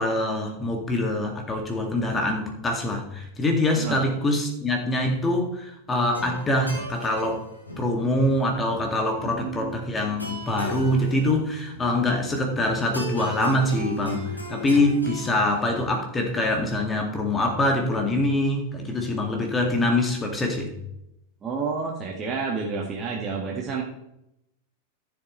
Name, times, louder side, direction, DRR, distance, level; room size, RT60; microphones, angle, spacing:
voice 1, 0.0-7.5 7.8-20.7, left 1 dB, 15° left, 3 dB, 2.1 m, -24 dB
sound 1, 6.0-16.0, right 1 dB, 85° left, 3.4 m, -38 dB
voice 2, 9.3-9.8 21.4-23.8, right 5 dB, 25° right, -2 dB, 1.7 m, -30 dB
14.5 x 7.5 x 3.2 m, 0.83 s
figure-of-eight pair, 90°, 0 cm